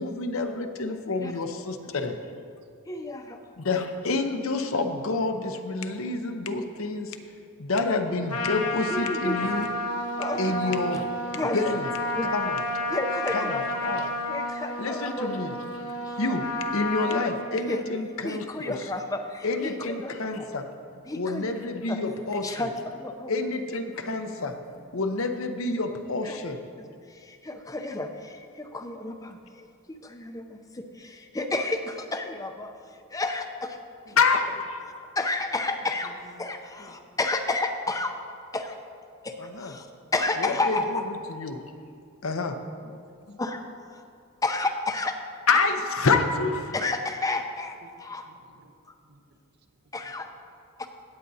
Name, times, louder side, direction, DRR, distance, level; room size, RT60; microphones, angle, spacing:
voice 1, 0.0-2.2 3.6-7.2 7.6-9.7 10.4-11.0 11.5-11.9 12.3-12.6 13.3-14.0 14.8-15.5 16.2-18.7 19.4-20.6 21.1-22.7 23.3-26.6 34.2-35.0 39.4-39.7 40.4-41.0 41.3-41.6 42.2-42.6 45.5-46.8, left 3 dB, 65° left, 6 dB, 0.7 m, -28 dB
voice 2, 2.9-3.4 8.9-9.5 10.2-11.0 11.3-11.6 12.1-12.3 12.9-13.6 14.3-15.4 16.0-16.2 17.6-17.8 18.2-20.4 21.1-21.6 21.9-22.0 22.4-23.3 26.2-26.4 27.1-33.8 34.1-34.2 35.2-36.1 36.4-38.1 38.5-38.8 39.2-39.9 40.1-41.0 43.4-44.0 44.4-45.1 46.7-48.3 49.9-50.3 50.8-50.9, left 2 dB, 15° left, 5 dB, 0.6 m, -31 dB
Trumpet, 8.3-17.4, left 1 dB, 85° left, 1.1 m, -31 dB
voice 3, 23.9-24.5 34.1-34.2 36.0-36.5 36.8-37.2 42.8-43.2 47.8-47.9 48.2-48.7 49.0-49.4, right 2 dB, 45° right, 5 dB, 0.7 m, -54 dB
16.5 x 8.9 x 2.7 m, 2.4 s
head